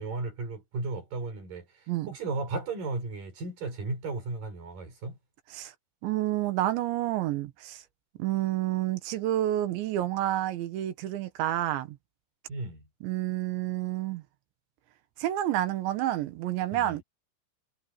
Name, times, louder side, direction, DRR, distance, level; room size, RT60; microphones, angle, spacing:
voice 1, 0.0-1.7 2.1-5.2 12.5-12.9 16.7-17.0, right 3 dB, 45° right, 7.5 m, -35 dB
voice 2, 6.0-7.8 8.2-12.0 13.0-14.2 15.2-17.0, right 13 dB, 75° right, 3.6 m, -29 dB
omnidirectional pair, 5.4 m